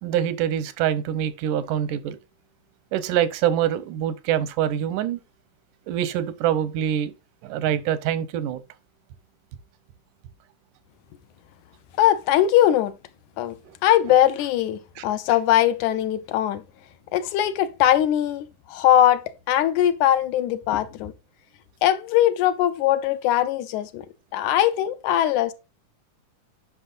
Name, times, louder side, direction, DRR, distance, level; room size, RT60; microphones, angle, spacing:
voice 1, 0.0-2.2 2.9-5.2 5.9-7.1 7.4-8.6 15.0-15.1, right 10 dB, 90° right, 2.3 m, -25 dB
voice 2, 12.0-12.9 13.4-13.6 13.8-16.6 17.1-21.1 21.8-24.1 24.3-25.5, left 12 dB, 80° left, 2.0 m, -21 dB
9.7 x 5.9 x 2.5 m
omnidirectional pair, 3.6 m